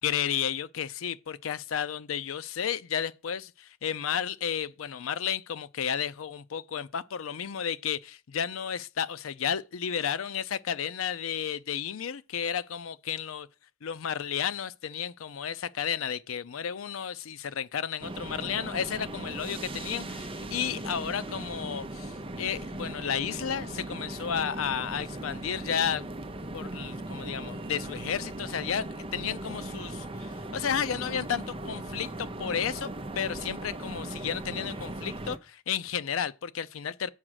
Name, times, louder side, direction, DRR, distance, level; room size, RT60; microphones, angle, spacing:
voice 1, 0.0-13.5 13.8-26.0 26.5-32.9 33.2-37.1, left 8 dB, 90° left, 0.5 m, -32 dB
sound 1, 18.0-35.4, right 1 dB, 25° right, 0.7 m, -38 dB
7.4 x 4.9 x 6.3 m
head